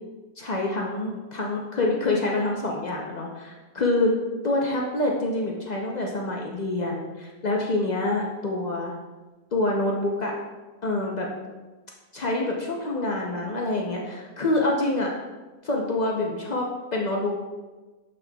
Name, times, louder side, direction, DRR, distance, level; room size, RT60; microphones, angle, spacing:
voice 1, 0.4-4.1 4.4-8.9 9.5-10.3 10.8-11.3 12.1-15.1 15.6-17.3, left 2 dB, 70° left, -1 dB, 0.4 m, -26 dB
7.7 x 6.0 x 2.3 m, 1.2 s
omnidirectional pair, 1.7 m